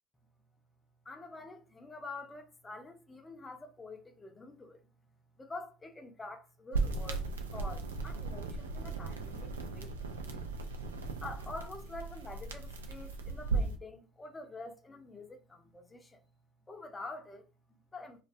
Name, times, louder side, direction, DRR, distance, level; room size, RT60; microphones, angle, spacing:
voice 1, 1.0-5.1 5.4-10.7 11.0-16.2 16.7-18.2, left 3 dB, 20° left, 0.5 m, -47 dB
sound 1, 6.7-13.8, right 4 dB, 85° right, 0.3 m, -37 dB
2.3 x 2.2 x 2.5 m
hypercardioid pair, 65°, 0 cm